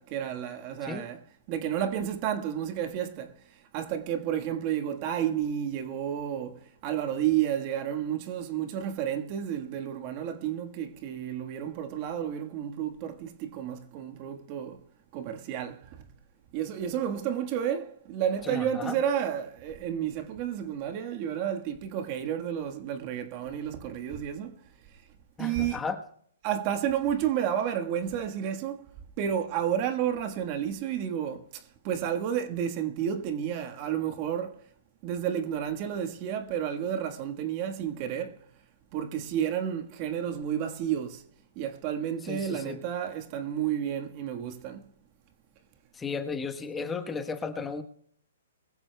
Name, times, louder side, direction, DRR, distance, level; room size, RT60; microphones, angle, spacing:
voice 1, 0.0-14.8 15.1-16.0 16.5-24.6 24.9-25.0 25.4-25.8 26.4-28.8 29.2-34.6 35.0-38.4 38.9-41.2 41.5-44.9, right 9 dB, 35° right, 1.5 m, -31 dB
voice 2, 18.5-18.9 25.4-26.0 42.3-42.8 45.9-47.8, left 5 dB, 10° left, 1.2 m, -34 dB
23.0 x 15.0 x 2.3 m
hypercardioid pair, 135°, 0 cm